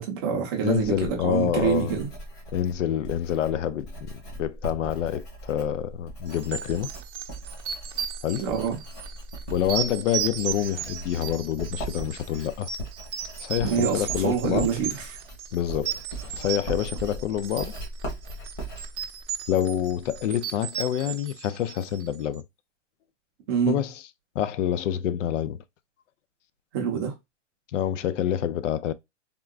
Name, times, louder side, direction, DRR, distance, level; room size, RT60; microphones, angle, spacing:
voice 1, 0.0-2.1 8.4-8.8 13.6-15.2 23.5-23.8 26.7-27.1, right 7 dB, 20° right, 0.6 m, -26 dB
voice 2, 0.6-2.0 2.5-4.1 4.4-6.9 8.2-8.5 9.5-12.7 13.4-14.7 15.5-17.7 19.5-22.4 23.7-23.9 24.4-25.6 27.7-28.9, left 10 dB, 90° left, 0.5 m, -27 dB
Writing, 0.8-20.3, right 1 dB, 25° left, 1.1 m, -40 dB
sound 1, 6.3-22.1, right 10 dB, 70° right, 0.6 m, -35 dB
3.6 x 2.2 x 2.3 m
hypercardioid pair, 165°, 36 cm